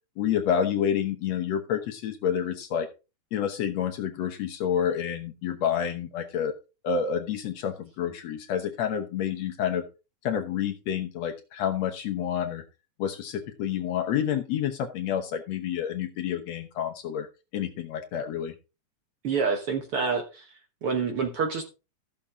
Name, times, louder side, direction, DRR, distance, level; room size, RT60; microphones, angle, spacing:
voice 1, 0.2-2.9 3.3-6.5 6.8-9.8 10.2-12.6 13.0-17.3 17.5-18.5, left 8 dB, 65° left, 5 dB, 2.0 m, -29 dB
voice 2, 19.2-20.5 20.8-21.6, right 5 dB, 55° right, 5 dB, 1.7 m, -27 dB
13.5 x 7.2 x 3.6 m, 0.30 s
omnidirectional pair, 3.7 m